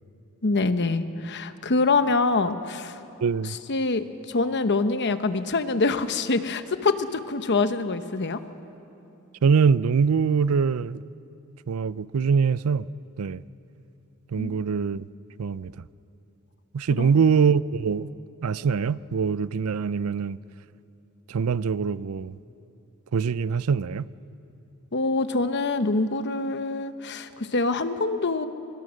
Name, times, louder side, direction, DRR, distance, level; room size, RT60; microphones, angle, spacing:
voice 1, 0.4-3.0 3.4-8.4 14.4-14.6 17.0-17.1 24.9-28.5, left 3 dB, 50° left, 0.9 m, -25 dB
voice 2, 3.2-3.6 9.4-11.0 11.7-12.9 13.2-13.4 14.3-15.0 15.4-15.8 16.7-18.1 18.4-20.4 21.3-22.3 23.1-24.1, right 6 dB, 75° right, 0.5 m, -23 dB
23.5 x 23.0 x 6.4 m
head